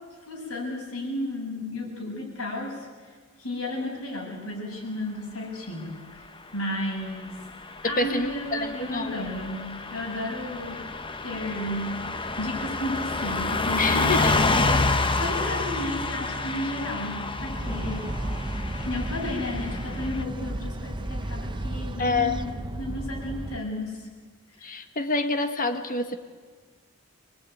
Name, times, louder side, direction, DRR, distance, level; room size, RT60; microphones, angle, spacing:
voice 1, 0.3-6.3 6.5-7.4 7.8-10.8 11.2-11.9 12.4-18.1 18.8-22.5 22.8-24.0 24.6-24.7, left 1 dB, 85° left, -1 dB, 7.1 m, -33 dB
Car passing by / Truck, 7.2-20.2, left 3 dB, 25° left, 1.1 m, -29 dB
voice 2, 7.8-9.2 13.8-14.4 22.0-22.4 24.6-26.2, left 3 dB, 40° left, 8 dB, 1.5 m, -27 dB
sound 1, 17.4-23.6, right 1 dB, 20° right, 0.8 m, -33 dB
24.5 x 21.0 x 9.2 m, 1.5 s
head